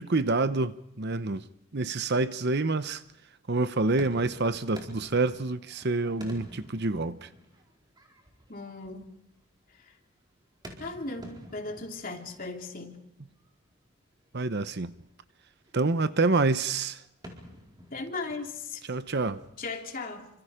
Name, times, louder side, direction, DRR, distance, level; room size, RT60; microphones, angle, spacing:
voice 1, 0.0-1.4 1.7-3.0 3.5-7.3 14.3-14.9 15.7-17.0 18.9-19.4, right 3 dB, 50° right, 0.8 m, -27 dB
sound 1, 3.0-3.2 3.6-9.5 10.4-13.0 13.3-13.5 14.2-14.3 14.5-14.6 14.9-15.2 15.7-16.3 17.0-19.9, equal, 20° right, 4.4 m, -50 dB
voice 2, 8.5-9.1 9.8-9.9 10.8-13.1 17.9-18.8 19.6-20.3, left 3 dB, 40° left, 3.1 m, -37 dB
28.5 x 26.0 x 5.0 m
head